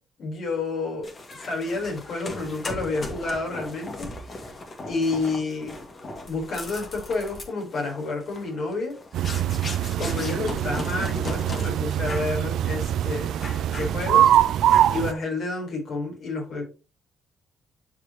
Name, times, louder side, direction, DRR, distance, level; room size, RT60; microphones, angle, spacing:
voice 1, 0.2-1.1 1.4-4.1 4.9-5.8 6.2-8.9 9.3-9.4 10.0-14.3 14.9-16.6, left 3 dB, 60° left, 0 dB, 4.3 m, -30 dB
sound 1, 1.0-11.7 12.0-12.4 12.7-12.9 13.4-14.3 14.7-15.1, left 2 dB, 40° left, 2.2 m, -38 dB
sound 2, 9.1-15.1, right 11 dB, 65° right, 0.5 m, -23 dB
11.0 x 5.2 x 3.1 m, 0.32 s
hypercardioid pair, 45°, 0 cm